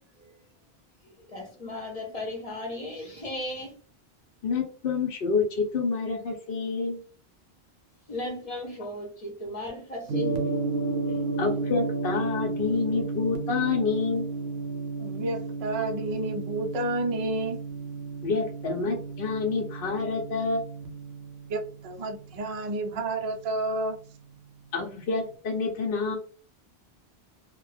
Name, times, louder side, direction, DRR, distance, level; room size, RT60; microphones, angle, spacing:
voice 1, 1.0-3.7 8.1-10.5 11.1-11.2, left 1 dB, 40° left, 0.7 m, -36 dB
voice 2, 4.4-7.0 11.4-14.3 18.2-20.6 24.7-26.2, left 4 dB, 65° left, 0.8 m, -28 dB
Gong, 10.1-24.3, right 3 dB, 75° right, 0.8 m, -33 dB
voice 3, 15.0-17.6 21.5-24.0, right 2 dB, 50° right, 0.4 m, -30 dB
2.2 x 2.0 x 3.1 m
omnidirectional pair, 1.1 m